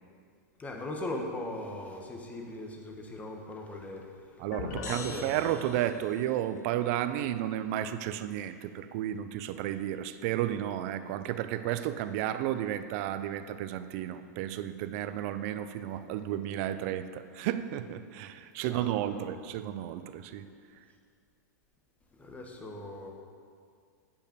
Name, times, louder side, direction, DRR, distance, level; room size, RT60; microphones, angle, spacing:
voice 1, 0.6-5.5 18.6-19.3 22.2-23.1, left 1 dB, 15° left, 2 dB, 1.2 m, -40 dB
voice 2, 4.4-20.5, right 12 dB, 50° right, 11 dB, 0.5 m, -32 dB
sound 1, 4.5-6.2, left 4 dB, 65° left, 1.2 m, -40 dB
9.1 x 5.2 x 6.9 m, 2.2 s
hypercardioid pair, 125°, 10 cm